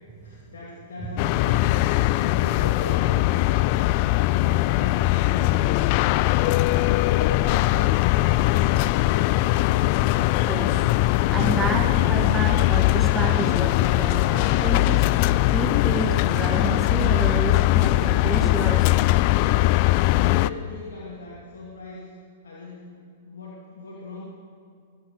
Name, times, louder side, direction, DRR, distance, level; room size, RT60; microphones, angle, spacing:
voice 1, 0.2-1.7 2.1-3.7 4.2-5.8 6.3-9.6 20.1-22.1 22.4-24.2, left 3 dB, 70° left, -4 dB, 2.6 m, -38 dB
sound 1, 1.2-20.5, left 17 dB, 45° left, 0.4 m, -21 dB
voice 2, 10.5-10.8 11.3-15.1 15.5-18.9 19.2-19.3, right 3 dB, 15° right, 2 dB, 2.0 m, -30 dB
23.5 x 9.1 x 6.5 m, 2.4 s
figure-of-eight pair, 110°, 0 cm